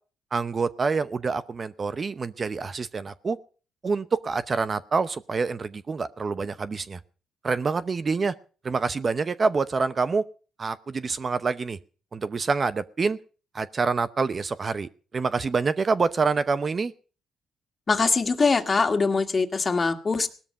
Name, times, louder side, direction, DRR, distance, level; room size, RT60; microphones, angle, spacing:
voice 1, 0.3-3.4 3.8-7.0 7.4-8.3 8.6-10.2 10.6-11.8 12.1-13.2 13.5-16.9, right 4 dB, 35° right, 13 dB, 0.8 m, -26 dB
voice 2, 17.9-20.3, left 4 dB, 30° left, 7 dB, 2.0 m, -23 dB
18.0 x 13.0 x 5.6 m, 0.39 s
cardioid pair, 90°, 0 cm